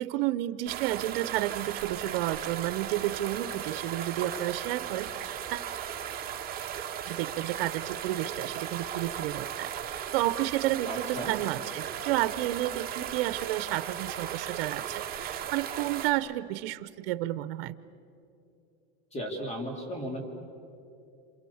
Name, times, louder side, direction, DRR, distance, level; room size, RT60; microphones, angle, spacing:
voice 1, 0.0-5.6 7.1-17.8, right 15 dB, 75° right, 15 dB, 0.9 m, -31 dB
sound 1, 0.7-16.1, right 9 dB, 30° right, 2.2 m, -36 dB
voice 2, 10.9-11.3 19.1-20.2, equal, 20° left, 3 dB, 3.3 m, -35 dB
28.5 x 27.5 x 7.2 m, 2.7 s
supercardioid pair, 145°, 29 cm